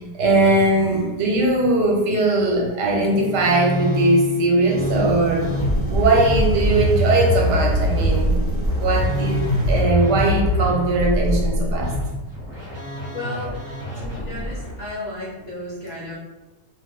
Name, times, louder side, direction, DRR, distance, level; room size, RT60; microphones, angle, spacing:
voice 1, 0.0-5.5 5.9-8.3 8.8-11.9, right 2 dB, 80° right, -1 dB, 1.3 m, -20 dB
Musical instrument, 3.0-14.8, equal, 25° left, 1.0 m, -24 dB
sound 1, 4.7-9.8, right 2 dB, 15° right, 0.7 m, -30 dB
voice 2, 13.1-13.6 13.9-16.2, left 1 dB, 55° left, -5 dB, 0.7 m, -33 dB
2.5 x 2.5 x 3.5 m, 1.1 s
omnidirectional pair, 1.8 m